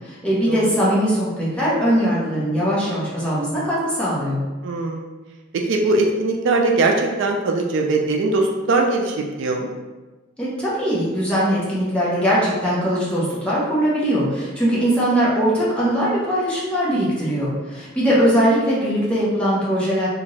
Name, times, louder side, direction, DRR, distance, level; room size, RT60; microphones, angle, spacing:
voice 1, 0.0-4.4 10.4-20.1, equal, 5° left, -8 dB, 0.8 m, -20 dB
voice 2, 4.6-5.1 5.5-9.7, right 3 dB, 65° right, 2 dB, 0.3 m, -20 dB
2.5 x 2.4 x 3.1 m, 1.2 s
head